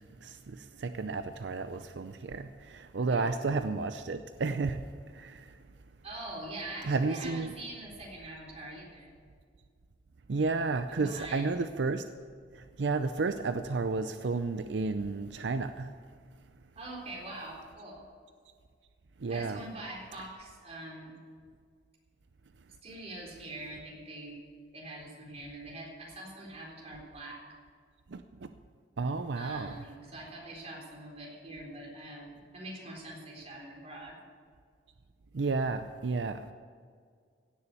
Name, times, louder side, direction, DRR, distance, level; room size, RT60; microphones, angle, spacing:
voice 1, 0.0-4.8 5.2-5.4 6.8-7.5 10.3-12.0 12.8-15.9 19.2-19.6 28.1-28.2 29.0-29.8 35.3-36.5, right 3 dB, 85° right, 9 dB, 0.5 m, -32 dB
voice 2, 6.0-9.2 10.9-11.5 16.8-18.0 19.3-21.1 22.8-24.3 24.7-27.4 29.3-34.2, right 1 dB, 40° right, -2 dB, 4.0 m, -44 dB
16.5 x 7.0 x 8.3 m, 2.1 s
head